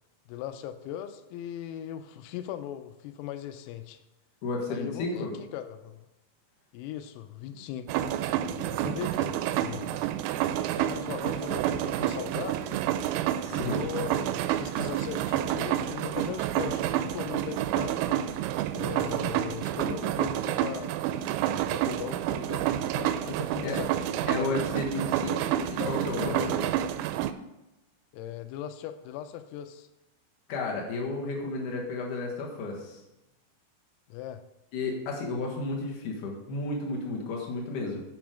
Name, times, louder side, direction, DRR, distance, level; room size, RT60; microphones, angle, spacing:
voice 1, 0.3-4.0 4.7-6.0 6.7-8.0 8.5-10.0 10.8-12.8 13.5-18.2 18.7-20.9 21.7-24.7 25.1-26.7 28.1-29.9 34.1-34.4, left 11 dB, 90° left, 9 dB, 3.3 m, -39 dB
voice 2, 4.4-5.3 7.5-7.6 13.4-13.8 23.6-23.8 24.3-25.4 25.9-26.6 30.5-33.0 34.7-38.0, left 2 dB, 75° left, -1 dB, 1.9 m, -32 dB
sound 1, 7.9-27.3, right 12 dB, 90° right, 3.3 m, -29 dB
9.2 x 6.2 x 5.1 m, 0.97 s
omnidirectional pair, 5.9 m